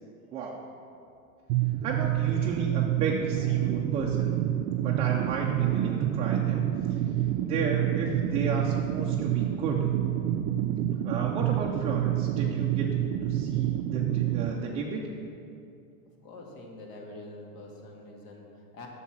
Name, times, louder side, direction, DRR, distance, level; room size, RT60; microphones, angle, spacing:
voice 1, 0.3-0.7 1.8-4.4 4.8-6.6 6.9-7.0 7.4-9.9 11.0-12.9 13.2-15.1, right 4 dB, 15° right, -2 dB, 0.3 m, -33 dB
sound 1, 1.5-14.5, right 12 dB, 60° right, 0.6 m, -27 dB
sound 2, 3.2-3.9 5.4-6.1 7.5-8.3 9.8-10.5 12.1-12.9 14.4-15.2, right 1 dB, 5° left, 1.9 m, -48 dB
voice 2, 16.2-18.9, left 2 dB, 70° left, 0 dB, 2.0 m, -45 dB
8.2 x 7.1 x 5.9 m, 2.6 s
supercardioid pair, 140°, 42 cm